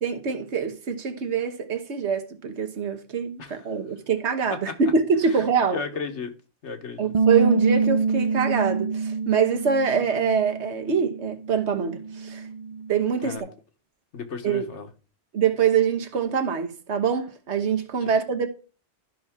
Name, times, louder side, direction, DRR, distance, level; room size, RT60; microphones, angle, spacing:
voice 1, 0.0-5.8 7.0-12.5 12.9-13.5 14.4-14.7 15.3-18.5, right 6 dB, 80° right, 1.4 m, -24 dB
voice 2, 5.7-6.3 6.6-7.1 13.2-13.5 14.1-14.9, left 5 dB, 85° left, 1.4 m, -34 dB
Bass guitar, 7.1-13.4, right 5 dB, 55° right, 0.4 m, -26 dB
12.5 x 5.6 x 3.6 m
omnidirectional pair, 1.2 m